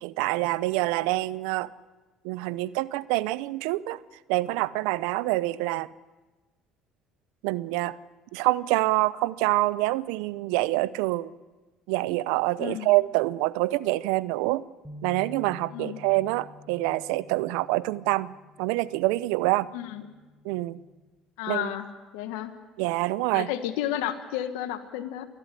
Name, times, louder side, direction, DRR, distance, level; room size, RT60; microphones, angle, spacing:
voice 1, 0.0-1.7 2.2-4.0 4.3-5.9 7.4-8.0 8.3-11.3 11.9-14.6 15.0-18.3 18.6-19.7 20.4-20.8 21.5-21.7 22.8-23.5, right 19 dB, 80° right, 18 dB, 0.6 m, -26 dB
voice 2, 12.6-12.9 15.7-16.0 19.7-20.0 21.4-21.9 22.1-22.5 23.3-25.3, left 12 dB, 80° left, 8 dB, 1.5 m, -32 dB
sound 1, 14.8-21.1, left 3 dB, 5° right, 5.6 m, -49 dB
29.0 x 11.5 x 9.9 m, 1.2 s
supercardioid pair, 75°, 0 cm